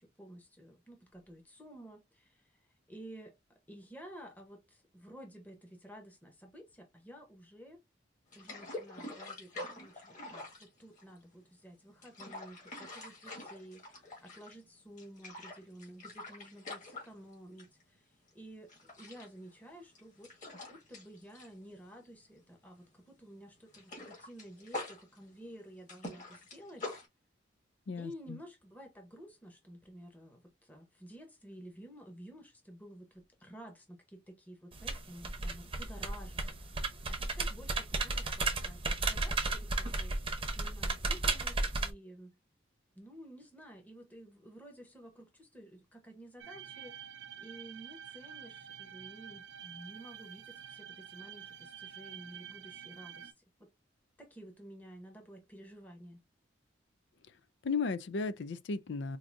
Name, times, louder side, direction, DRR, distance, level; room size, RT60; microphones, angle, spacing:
voice 1, 0.0-3.4 3.7-7.8 8.3-26.9 27.9-42.4 42.9-46.9 47.4-53.7 54.2-56.2, right 1 dB, 10° left, 0.9 m, -52 dB
sound 1, 8.3-11.4 11.8-14.7 15.0-17.8 18.1-18.3 18.7-22.5 22.7-23.0 23.3-27.1, left 2 dB, 40° left, 1.8 m, -46 dB
voice 2, 27.9-28.4 57.2-57.4 57.6-59.2, left 4 dB, 70° left, 0.4 m, -35 dB
sound 2, 34.7-41.9, right 3 dB, 30° right, 0.7 m, -34 dB
sound 3, 46.4-53.3, right 9 dB, 80° right, 0.6 m, -49 dB
4.7 x 2.6 x 2.5 m
head